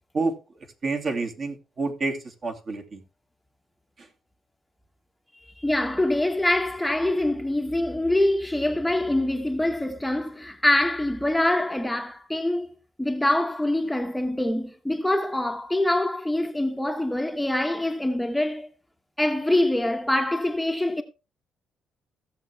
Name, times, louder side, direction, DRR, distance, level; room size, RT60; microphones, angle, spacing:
voice 1, 0.8-3.0, right 3 dB, 45° right, 2.5 m, -28 dB
voice 2, 5.6-18.7 19.2-21.0, left 1 dB, 5° left, 1.1 m, -24 dB
16.0 x 7.2 x 3.5 m
cardioid pair, 90°, 0 cm